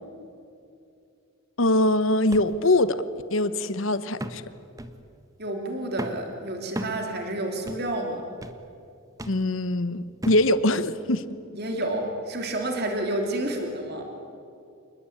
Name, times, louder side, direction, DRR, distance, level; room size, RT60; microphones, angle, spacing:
voice 1, 1.6-3.0 3.3-4.4 9.3-11.3, left 1 dB, 65° left, 14 dB, 1.1 m, -23 dB
sound 1, 2.3-2.5 3.0-3.1 4.2-4.5 4.8-5.0 6.0-6.3 6.8-7.0 7.7-7.9 8.4-8.6 9.2-9.4 10.2-10.5 11.2-11.3, equal, 15° right, 1.3 m, -35 dB
voice 2, 5.4-8.2 11.6-14.0, right 1 dB, 50° right, 3 dB, 3.2 m, -29 dB
28.0 x 20.5 x 8.8 m, 2.5 s
head